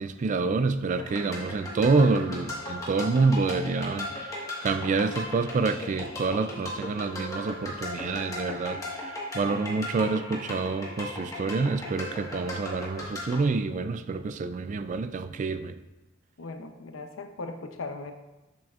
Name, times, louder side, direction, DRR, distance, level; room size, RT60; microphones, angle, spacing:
voice 1, 0.0-15.8, right 4 dB, 40° right, 11 dB, 0.3 m, -27 dB
sound 1, 1.0-13.4, left 1 dB, 15° left, 1.4 m, -37 dB
voice 2, 16.4-18.1, left 3 dB, 75° left, 7 dB, 0.7 m, -38 dB
7.7 x 7.3 x 2.4 m, 1.0 s
head